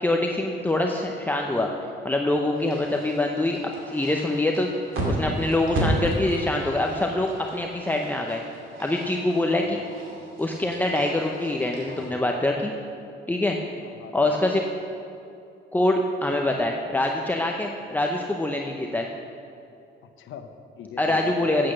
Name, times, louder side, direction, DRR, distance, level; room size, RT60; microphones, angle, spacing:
voice 1, 0.0-1.7 2.0-4.7 5.1-8.4 8.8-9.8 10.4-12.7 13.3-13.6 14.1-14.6 15.7-19.1 21.0-21.7, left 1 dB, 10° left, 1 dB, 0.7 m, -24 dB
sound 1, 2.5-12.1, right 1 dB, 85° right, 2.6 m, -33 dB
voice 2, 2.8-3.1 9.5-9.9 13.8-14.4 20.2-21.3, left 8 dB, 80° left, 7 dB, 0.9 m, -42 dB
8.7 x 8.2 x 6.3 m, 2.6 s
cardioid pair, 90°, 20 cm